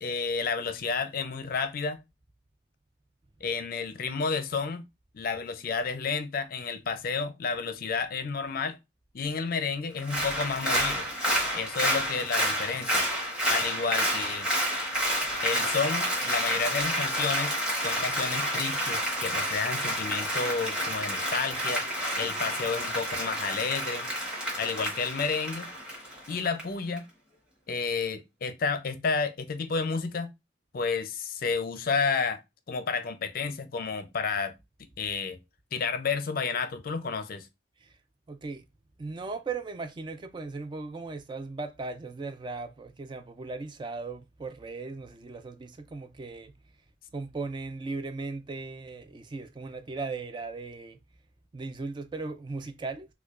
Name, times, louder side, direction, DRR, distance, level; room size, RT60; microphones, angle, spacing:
voice 1, 0.0-2.0 3.4-4.8 5.1-8.8 9.1-11.1 11.5-13.1 13.5-14.5 15.4-21.8 22.2-24.1 24.6-25.7 26.3-27.1 27.7-30.3 30.7-32.4 32.7-34.5 35.0-35.4 35.7-37.5, left 5 dB, 55° left, 0.5 m, -31 dB
Applause, 10.0-26.6 27.0-27.1, equal, 5° right, 1.3 m, -29 dB
voice 2, 38.3-38.6 39.0-46.5 47.1-51.0 51.5-53.1, right 3 dB, 25° right, 0.3 m, -37 dB
4.5 x 2.2 x 2.4 m
head